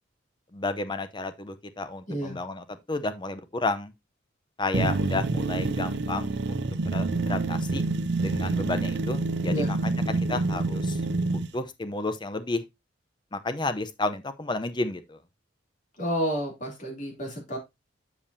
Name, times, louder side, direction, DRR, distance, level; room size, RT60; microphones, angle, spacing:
voice 1, 0.5-3.9 4.6-6.6 6.9-7.8 8.2-11.0 11.3-12.6 13.3-15.2, left 2 dB, 25° left, 0.7 m, -32 dB
voice 2, 2.1-2.4 9.5-9.7 16.0-17.6, equal, 40° left, 3.0 m, -30 dB
sound 1, 4.7-11.5, right 3 dB, 60° right, 0.5 m, -27 dB
7.4 x 7.0 x 2.7 m
head